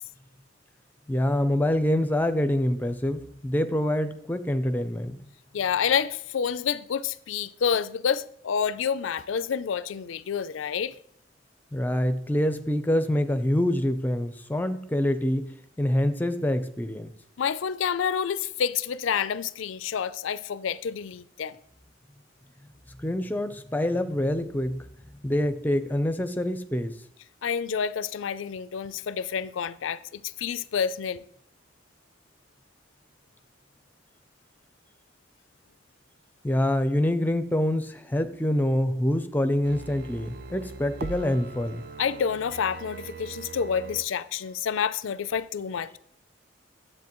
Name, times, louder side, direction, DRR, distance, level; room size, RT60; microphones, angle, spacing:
voice 1, 1.1-5.2 11.7-15.5 15.8-17.1 23.0-24.9 25.2-26.9 36.4-41.8, left 1 dB, 10° left, 0.5 m, -26 dB
voice 2, 5.5-10.9 17.4-21.6 27.4-31.2 42.0-46.0, left 7 dB, 90° left, 0.4 m, -28 dB
sound 1, 39.6-44.1 44.4-44.5, right 4 dB, 55° right, 0.4 m, -40 dB
10.5 x 7.7 x 3.0 m
head